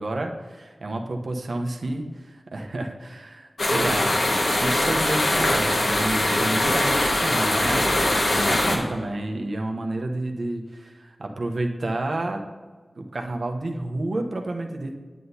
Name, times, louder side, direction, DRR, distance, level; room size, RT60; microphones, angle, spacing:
voice 1, 0.0-4.1 4.4-12.4 13.0-14.9, right 2 dB, 75° right, 3 dB, 0.8 m, -30 dB
sound 1, 3.6-8.8, left 1 dB, 85° left, 1.5 m, -22 dB
9.2 x 7.9 x 2.7 m, 1.5 s
wide cardioid pair, 65°, 0 cm